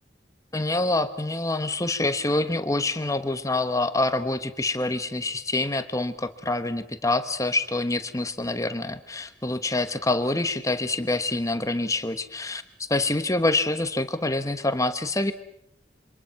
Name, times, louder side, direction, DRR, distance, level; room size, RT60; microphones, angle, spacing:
voice 1, 0.5-12.6 12.9-15.3, left 2 dB, 20° left, 10 dB, 1.2 m, -26 dB
27.5 x 25.5 x 5.9 m, 0.76 s
head